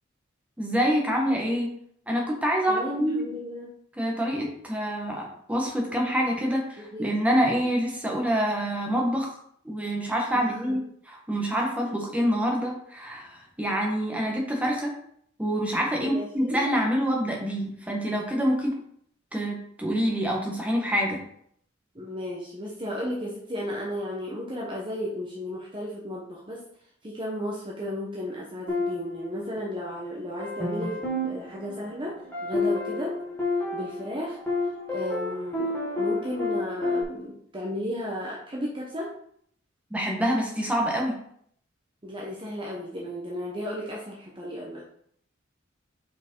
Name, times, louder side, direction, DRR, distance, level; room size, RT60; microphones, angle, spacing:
voice 1, 0.6-1.7 2.1-3.2 4.0-9.4 9.6-10.8 11.1-14.9 15.4-18.7 19.3-21.2 39.9-41.2, equal, 5° right, -1 dB, 1.4 m, -26 dB
voice 2, 2.7-3.7 6.8-7.1 10.4-10.8 15.9-16.6 21.9-26.6 27.0-33.2 33.7-34.4 34.9-39.1 42.0-44.8, equal, 25° right, -3 dB, 1.0 m, -34 dB
sound 1, 28.7-29.9 30.4-37.0, left 2 dB, 10° left, 1.9 m, -30 dB
5.3 x 4.8 x 4.6 m, 0.66 s
head